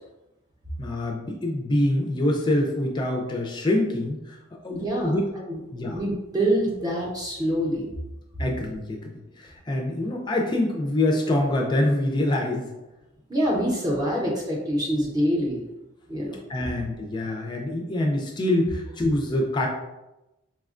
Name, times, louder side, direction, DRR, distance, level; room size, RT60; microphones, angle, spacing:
voice 1, 0.8-4.4 4.6-5.2 5.7-6.0 8.4-12.7 16.5-19.7, left 1 dB, 20° left, 0 dB, 0.4 m, -25 dB
voice 2, 4.7-5.1 5.5-5.6 5.9-7.9 13.3-15.6 16.1-16.4, right 1 dB, 20° right, -3 dB, 0.6 m, -25 dB
4.2 x 2.2 x 2.4 m, 0.96 s
head